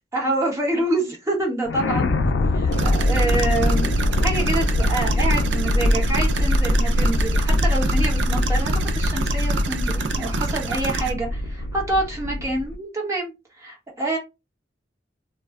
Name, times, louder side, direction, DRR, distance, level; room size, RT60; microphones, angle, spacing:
voice 1, 0.1-2.1 2.5-3.9 4.2-14.2, right 2 dB, 15° right, 0.9 m, -27 dB
sound 1, 1.7-12.7, left 1 dB, 90° left, 0.4 m, -22 dB
sound 2, 2.7-11.1, right 4 dB, 85° right, 0.5 m, -28 dB
2.3 x 2.1 x 3.4 m
head